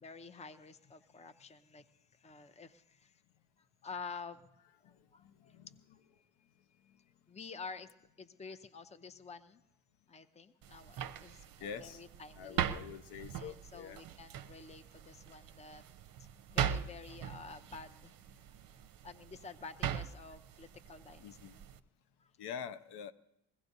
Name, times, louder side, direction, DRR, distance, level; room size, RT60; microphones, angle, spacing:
voice 1, 0.0-1.9 2.1-3.2 3.6-4.4 4.8-5.6 5.9-6.2 7.3-7.9 8.2-9.6 10.1-12.7 13.3-15.9 16.2-18.2 19.0-21.4 22.2-22.3, left 5 dB, 15° left, 11 dB, 0.7 m, -50 dB
voice 2, 4.8-5.7 6.9-7.0 11.6-12.0 12.4-14.0 21.2-21.6 22.4-23.1, left 7 dB, 65° left, 12 dB, 0.8 m, -46 dB
sound 1, 10.6-21.8, right 9 dB, 50° right, 0.7 m, -41 dB
21.0 x 16.5 x 2.7 m, 0.83 s
supercardioid pair, 60°, 43 cm